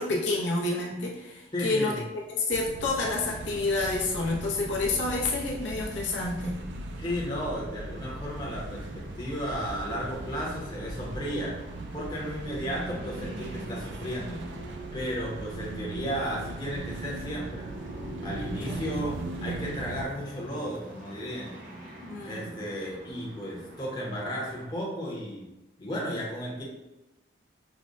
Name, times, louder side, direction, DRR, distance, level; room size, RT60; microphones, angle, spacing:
voice 1, 0.0-1.9 2.3-6.6 18.6-18.8 22.0-22.5, left 2 dB, 80° left, -2 dB, 0.7 m, -29 dB
voice 2, 1.5-2.0 7.0-11.6 11.9-17.7 18.2-21.5 22.2-25.5 25.8-26.6, equal, 25° left, -4 dB, 0.7 m, -34 dB
sound 1, 2.5-20.1, right 2 dB, 75° right, 0.4 m, -39 dB
sound 2, 5.9-24.7, equal, 45° right, 0.7 m, -45 dB
5.0 x 2.1 x 2.5 m, 0.96 s
head